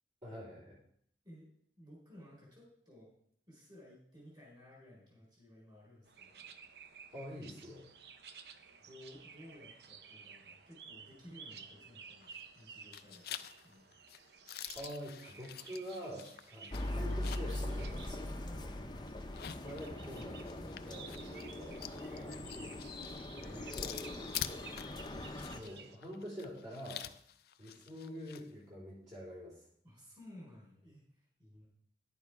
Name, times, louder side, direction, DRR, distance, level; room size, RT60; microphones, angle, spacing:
voice 1, 0.2-0.8 7.1-7.9 14.7-18.3 19.6-27.1 27.6-29.6, equal, 40° right, -8 dB, 3.8 m, -47 dB
voice 2, 1.8-3.1 3.5-6.5 7.1-7.3 8.8-13.9 18.3-19.1 23.1-23.8 29.8-31.7, left 1 dB, 25° right, -3 dB, 4.3 m, -56 dB
sound 1, 6.1-26.0, right 6 dB, 65° right, 0.7 m, -55 dB
sound 2, 12.2-12.6 12.9-17.6 18.0-18.1 19.2-28.5, left 11 dB, 60° left, 0.5 m, -47 dB
sound 3, 16.7-25.6, left 1 dB, 25° left, 0.7 m, -41 dB
10.5 x 7.1 x 4.8 m, 0.66 s
head